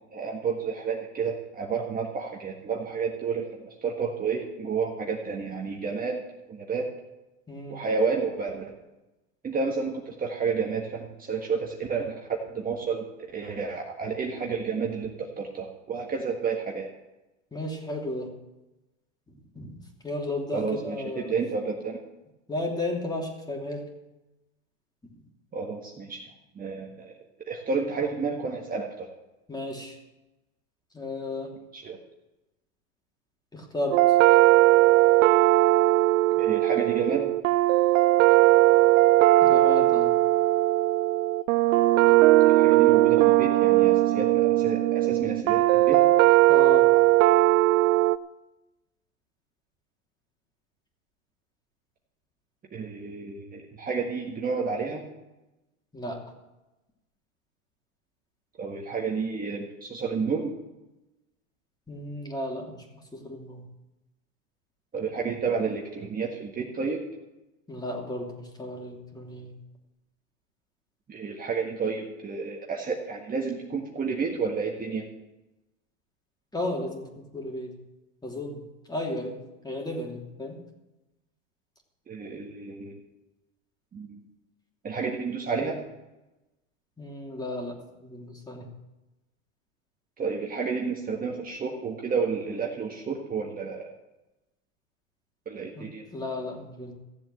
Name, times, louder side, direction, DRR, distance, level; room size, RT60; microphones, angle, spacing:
voice 1, 0.1-6.2 6.5-6.9 7.7-8.7 9.4-12.2 12.5-13.0 13.3-16.9 20.5-22.0 25.5-26.2 26.5-27.1 27.5-29.1 31.7-32.0 36.4-37.3 42.5-46.0 52.7-55.0 58.6-60.5 64.9-67.0 71.1-75.1 82.1-83.0 83.9-84.2 84.8-85.8 90.2-93.9 95.4-96.0, right 5 dB, 20° right, 0 dB, 1.7 m, -30 dB
voice 2, 7.5-7.8 17.5-18.3 19.3-21.4 22.5-23.9 25.2-25.3 29.5-30.0 30.9-31.5 33.5-34.2 39.4-40.1 46.5-46.9 55.9-56.2 61.9-62.9 63.1-63.7 67.7-69.5 76.5-77.7 78.2-78.6 78.9-80.6 87.0-88.7 95.7-95.9 96.1-96.9, left 1 dB, 10° left, 1 dB, 2.9 m, -34 dB
sound 1, 33.9-48.2, right 17 dB, 70° right, 0.6 m, -19 dB
15.5 x 7.7 x 7.8 m, 1.0 s
hypercardioid pair, 115°, 40 cm